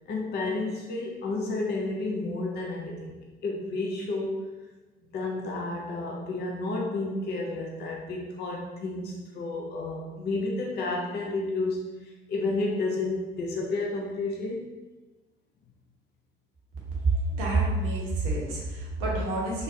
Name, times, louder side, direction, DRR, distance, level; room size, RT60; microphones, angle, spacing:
voice 1, 0.1-3.2 3.4-4.5 5.1-14.7, left 2 dB, 35° left, -1 dB, 0.6 m, -31 dB
voice 2, 17.0-19.6, right 2 dB, 70° right, -4 dB, 1.0 m, -27 dB
3.9 x 2.5 x 2.7 m, 1.2 s
figure-of-eight pair, 55°, 29 cm